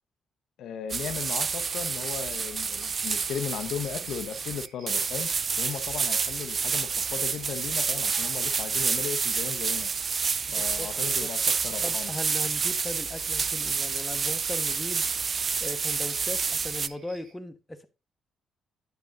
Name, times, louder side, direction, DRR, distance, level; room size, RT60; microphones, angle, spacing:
voice 1, 0.6-5.3 5.6-9.9 10.5-12.1, left 8 dB, 75° left, 1.0 m, -36 dB
sound 1, 0.9-16.9, right 5 dB, 40° right, 0.4 m, -29 dB
sound 2, 0.9-17.3, right 4 dB, 70° right, 2.3 m, -53 dB
voice 2, 10.6-11.3 11.8-15.1 15.6-17.9, left 1 dB, 10° left, 1.2 m, -38 dB
8.9 x 8.1 x 2.6 m
cardioid pair, 90°, 0 cm